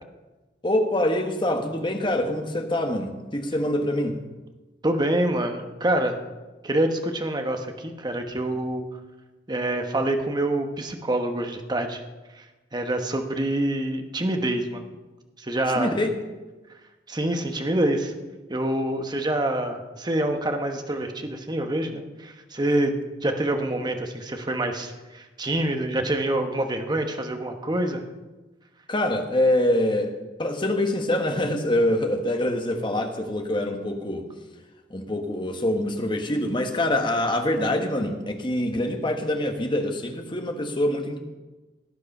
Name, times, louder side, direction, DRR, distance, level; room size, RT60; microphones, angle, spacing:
voice 1, 0.6-4.2 15.7-16.1 28.9-30.1 30.4-34.3 34.9-41.2, left 1 dB, 25° left, 5 dB, 1.4 m, -25 dB
voice 2, 4.8-6.2 6.6-8.8 9.5-12.0 12.4-12.5 12.7-14.8 15.4-16.0 17.1-18.1 18.5-28.0, right 1 dB, 25° right, 5 dB, 1.2 m, -26 dB
17.5 x 9.7 x 5.4 m, 1.2 s
head